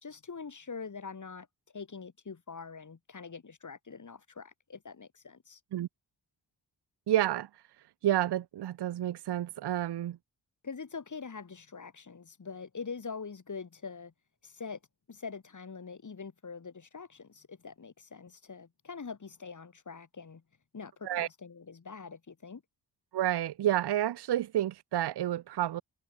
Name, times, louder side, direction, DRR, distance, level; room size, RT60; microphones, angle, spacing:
voice 1, 0.0-1.5 1.7-5.6 10.6-14.1 14.4-14.8 15.1-20.4 20.7-22.6, left 5 dB, 45° left, 3.1 m, -44 dB
voice 2, 7.1-7.5 8.0-10.2 21.0-21.3 23.1-25.8, right 12 dB, 70° right, 0.6 m, -30 dB
wide cardioid pair, 95°, 42 cm